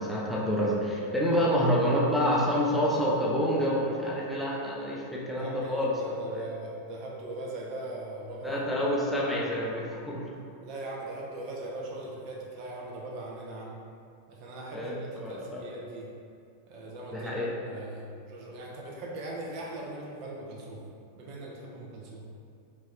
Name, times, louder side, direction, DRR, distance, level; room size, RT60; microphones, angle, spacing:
voice 1, 0.0-5.9 6.3-6.4 8.4-10.2 14.7-15.6 17.1-17.5, equal, ahead, -6 dB, 0.6 m, -28 dB
voice 2, 5.4-8.6 10.6-13.8 14.3-16.1 16.7-17.3 17.6-20.8 21.2-22.3, right 2 dB, 45° right, -3 dB, 0.6 m, -40 dB
3.0 x 2.6 x 3.5 m, 2.4 s
figure-of-eight pair, 90°, 0 cm